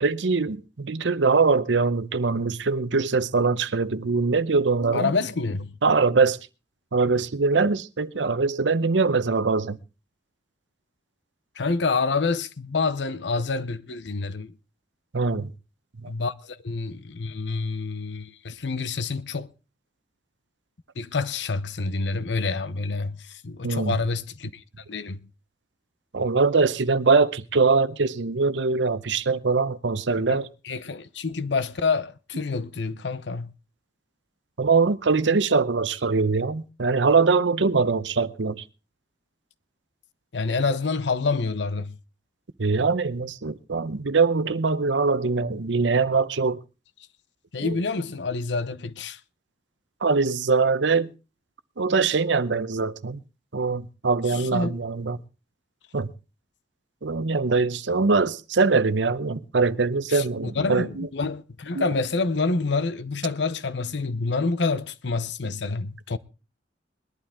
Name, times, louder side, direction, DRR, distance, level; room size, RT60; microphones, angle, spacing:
voice 1, 0.0-5.1 5.8-6.4 6.9-9.8 15.1-15.5 16.0-16.1 23.6-24.0 26.1-30.5 34.6-38.6 42.6-46.6 47.6-47.8 50.0-51.1 51.8-53.2 53.5-55.2 55.9-56.1 57.0-61.1 61.8-61.9, right 4 dB, 85° right, 0.8 m, -22 dB
voice 2, 4.9-5.8 11.6-14.5 16.1-19.5 21.0-24.6 24.9-25.2 30.1-33.5 40.3-42.0 47.5-49.2 54.3-54.8 60.1-66.2, left 4 dB, 75° left, 0.8 m, -27 dB
20.5 x 11.5 x 3.6 m
head